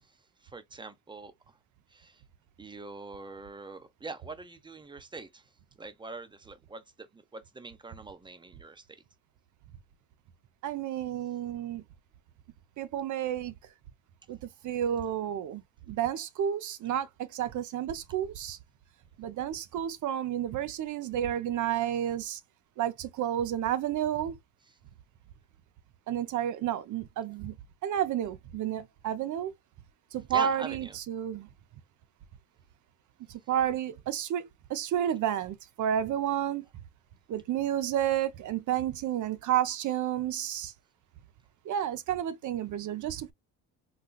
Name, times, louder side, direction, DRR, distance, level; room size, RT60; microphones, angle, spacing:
voice 1, 0.4-1.6 1.9-2.2 2.6-5.5 5.8-8.9 24.6-24.8 30.3-31.0, right 3 dB, 10° right, 0.8 m, -43 dB
voice 2, 10.6-11.8 12.8-13.5 14.3-14.4 14.6-15.6 15.9-18.6 19.2-22.4 22.8-24.4 26.1-27.5 27.8-29.5 30.1-31.5 33.5-36.7 37.3-40.7 41.7-43.3, right 10 dB, 50° right, 0.6 m, -31 dB
4.1 x 2.2 x 2.2 m
supercardioid pair, 75°, 38 cm